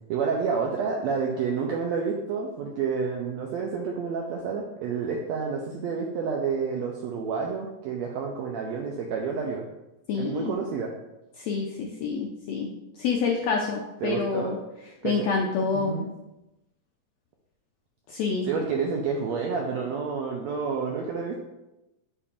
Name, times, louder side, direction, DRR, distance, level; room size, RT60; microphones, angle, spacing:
voice 1, 0.1-9.7 10.1-10.9 14.0-14.5 15.0-15.3 15.7-16.1 18.4-21.5, right 5 dB, 90° right, 0 dB, 1.5 m, -29 dB
voice 2, 10.1-10.5 11.4-12.7 13.0-14.6 15.0-16.0 18.1-18.5, left 5 dB, 80° left, 0 dB, 1.5 m, -27 dB
7.1 x 6.9 x 2.5 m, 0.96 s
omnidirectional pair, 3.8 m